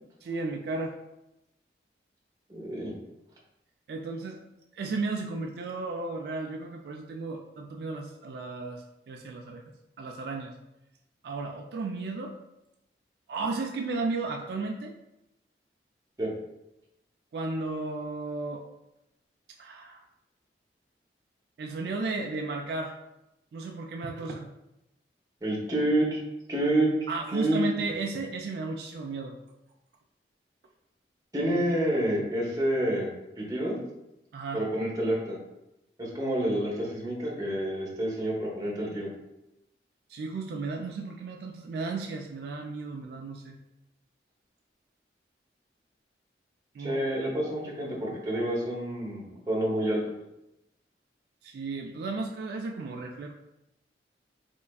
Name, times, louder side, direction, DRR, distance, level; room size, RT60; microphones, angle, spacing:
voice 1, 0.2-0.9 3.9-4.4 4.8-10.5 11.2-12.3 13.3-14.9 17.3-18.6 19.6-20.0 21.6-22.9 23.5-24.5 27.1-29.3 34.3-34.6 40.1-43.6 46.7-47.1 51.4-53.3, right 3 dB, 65° right, 1 dB, 0.3 m, -34 dB
voice 2, 2.5-2.9 16.2-16.3 25.4-26.2 26.5-26.9 27.3-27.6 31.3-33.1 33.4-33.8 34.5-35.4 36.0-39.1 46.8-50.0, right 1 dB, 20° right, -3 dB, 0.7 m, -28 dB
3.7 x 3.2 x 2.3 m, 0.89 s
head